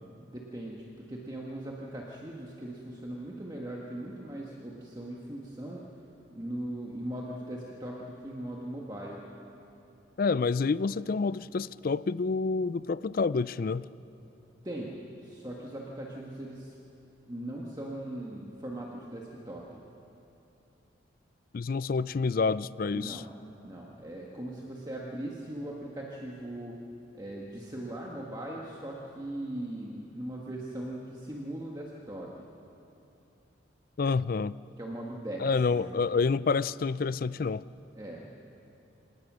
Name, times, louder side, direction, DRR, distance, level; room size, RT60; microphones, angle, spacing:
voice 1, 0.0-5.9 6.3-9.2 14.6-16.7 17.2-19.8 22.9-23.3 23.6-26.8 27.1-32.4 34.8-35.4 35.7-35.9 37.9-38.2, right 1 dB, 20° right, -3 dB, 1.6 m, -39 dB
voice 2, 10.2-13.9 21.5-23.2 34.0-34.5 35.4-37.6, left 4 dB, 45° left, 17 dB, 0.4 m, -28 dB
26.5 x 18.5 x 6.3 m, 3.0 s
head